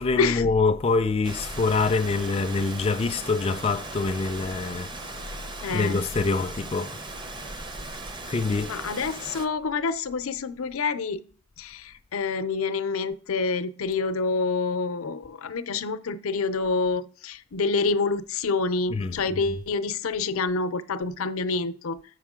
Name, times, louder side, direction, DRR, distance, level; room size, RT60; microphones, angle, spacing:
voice 1, 0.0-4.9 5.7-7.0 8.3-8.8 18.9-19.6, left 4 dB, 30° left, 0.3 m, -25 dB
Rain, 1.2-9.5, right 2 dB, 20° right, 0.6 m, -38 dB
voice 2, 5.6-6.1 8.7-11.2 11.6-22.0, left 4 dB, 85° left, 0.5 m, -27 dB
7.9 x 5.6 x 3.6 m
head